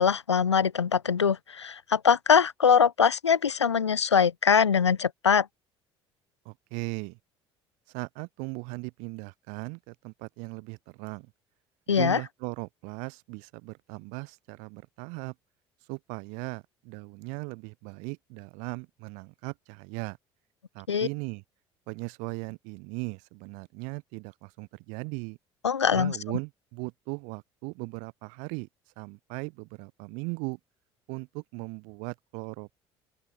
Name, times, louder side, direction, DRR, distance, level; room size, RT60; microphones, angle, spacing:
voice 1, 0.0-5.5 11.9-12.2 20.9-21.1 25.6-26.2, left 7 dB, 85° left, 0.6 m, -22 dB
voice 2, 6.4-7.2 7.9-11.3 11.9-15.3 15.9-20.2 20.7-21.4 21.9-25.4 25.9-28.7 29.0-30.6 31.1-32.8, right 33 dB, 60° right, 2.6 m, -38 dB
open air
figure-of-eight pair, 60°, 14 cm